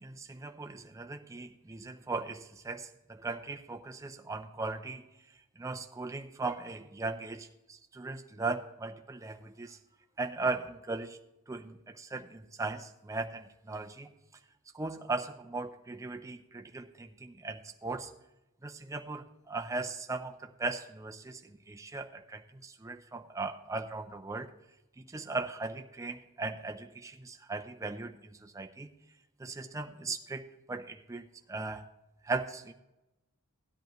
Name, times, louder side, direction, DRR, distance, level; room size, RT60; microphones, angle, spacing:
voice 1, 0.0-5.1 5.6-9.8 10.2-11.2 11.5-14.1 14.7-18.1 18.6-24.5 25.0-28.9 29.4-31.8 32.2-32.7, right 3 dB, 15° right, 5 dB, 0.4 m, -38 dB
16.5 x 10.5 x 3.0 m, 0.97 s
head